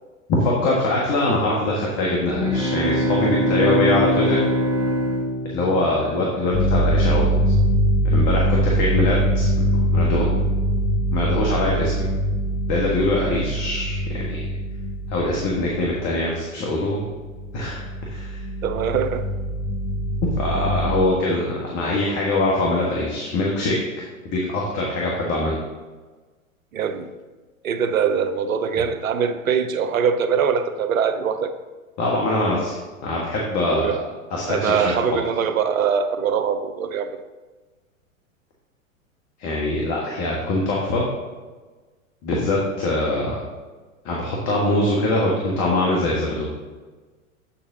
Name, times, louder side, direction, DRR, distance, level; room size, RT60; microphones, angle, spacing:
voice 1, 0.3-4.4 5.5-7.3 8.1-9.5 9.9-10.3 11.1-11.9 12.7-14.4 15.1-17.1 17.5-18.4 20.4-23.8 24.3-25.5 32.0-33.9 34.3-34.9 39.4-41.0 42.2-43.3 44.0-46.5, left 2 dB, 40° left, -3 dB, 1.6 m, -23 dB
sound 1, 2.2-6.3, equal, 10° right, 1.1 m, -22 dB
sound 2, 6.5-16.2 17.1-21.0, equal, 15° left, 0.6 m, -23 dB
voice 2, 18.6-19.2 26.7-27.1 27.6-31.5 33.7-34.0 34.5-37.2, right 7 dB, 80° right, 10 dB, 0.7 m, -22 dB
8.1 x 7.0 x 2.8 m, 1.3 s
hypercardioid pair, 105°, 41 cm